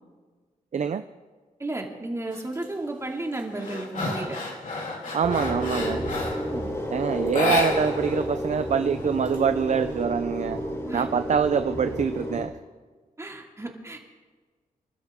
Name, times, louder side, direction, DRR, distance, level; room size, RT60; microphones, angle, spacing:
voice 1, 1.6-4.4 6.3-6.8 10.9-11.1 13.2-14.0, right 2 dB, 20° right, 1 dB, 2.5 m, -33 dB
sound 1, 2.3-2.7 3.1-6.5 7.3-8.2 8.5-8.6 9.0-9.9, left 3 dB, 65° left, 3.6 m, -30 dB
voice 2, 5.1-6.0 6.9-10.6 10.9-12.5, right 7 dB, 55° right, 10 dB, 0.6 m, -25 dB
sound 2, 5.2-12.4, equal, 20° left, 5.0 m, -31 dB
26.0 x 12.5 x 3.7 m, 1.4 s
wide cardioid pair, 100°, 15 cm